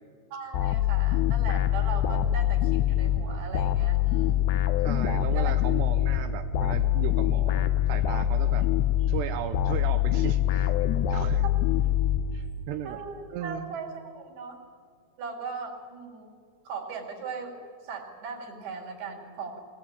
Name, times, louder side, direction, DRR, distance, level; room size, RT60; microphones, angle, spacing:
voice 1, 0.3-4.6 5.3-5.5 11.4-11.5 12.8-14.6 15.2-16.3 16.7-19.6, right 5 dB, 65° right, 1 dB, 4.4 m, -39 dB
sound 1, 0.5-12.7, left 11 dB, 80° left, 3.1 m, -25 dB
voice 2, 4.8-8.7 9.0-10.7 11.1-11.4 12.3-13.0 13.3-13.7, right 9 dB, 85° right, 7 dB, 3.0 m, -36 dB
21.5 x 19.0 x 8.8 m, 2.2 s
omnidirectional pair, 4.9 m